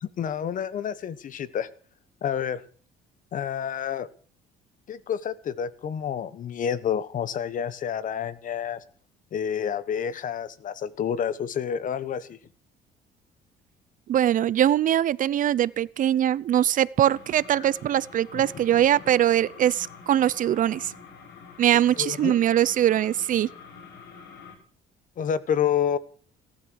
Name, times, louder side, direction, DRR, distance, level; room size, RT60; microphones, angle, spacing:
voice 1, 0.0-1.7 2.2-2.6 3.3-4.1 4.9-8.8 9.3-12.4 17.6-17.7 18.3-18.6 21.9-22.4 25.2-26.0, left 8 dB, 50° left, 1.4 m, -29 dB
voice 2, 14.1-20.9 21.6-23.5, right 11 dB, 50° right, 0.7 m, -22 dB
sound 1, 17.1-24.5, left 5 dB, 85° left, 6.2 m, -47 dB
18.5 x 12.0 x 6.4 m
cardioid pair, 110°, 17 cm